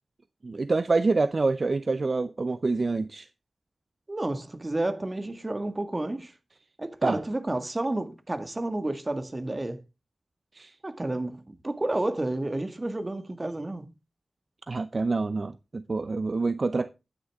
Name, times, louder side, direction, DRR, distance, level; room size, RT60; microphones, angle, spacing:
voice 1, 0.4-3.3 7.0-7.2 10.5-10.7 14.7-16.9, right 3 dB, 50° right, 0.6 m, -26 dB
voice 2, 4.1-6.3 6.8-9.8 10.8-13.8, right 2 dB, 30° right, 1.8 m, -30 dB
11.0 x 9.7 x 3.6 m
wide cardioid pair, 80°, 0 cm